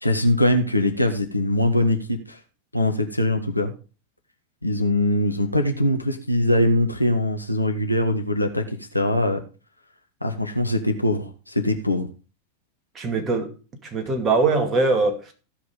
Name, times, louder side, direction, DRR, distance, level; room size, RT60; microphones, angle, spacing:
voice 1, 0.0-2.4 2.7-3.7 4.6-9.4 10.2-12.1, left 1 dB, 85° left, 1.5 m, -22 dB
voice 2, 12.9-13.5 13.8-15.3, right 3 dB, 25° right, 2.4 m, -22 dB
15.0 x 5.8 x 5.2 m
figure-of-eight pair, 90°, 0 cm